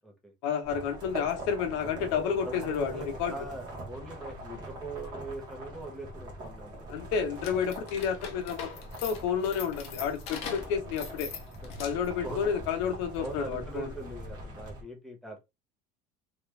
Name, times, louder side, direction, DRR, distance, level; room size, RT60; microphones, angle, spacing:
voice 1, 0.4-3.3 6.9-8.7 9.0-11.3 11.8-13.9, left 7 dB, 70° left, 0.9 m, -30 dB
sound 1, 0.6-14.8, right 1 dB, 30° right, 1.1 m, -43 dB
voice 2, 2.0-6.9 8.7-9.0 10.3-10.5 11.6-11.7 12.2-12.5 13.2-15.4, right 2 dB, ahead, 0.8 m, -42 dB
sound 2, 7.4-12.2, left 6 dB, 45° left, 0.8 m, -42 dB
3.0 x 2.4 x 3.3 m
cardioid pair, 175°, 15 cm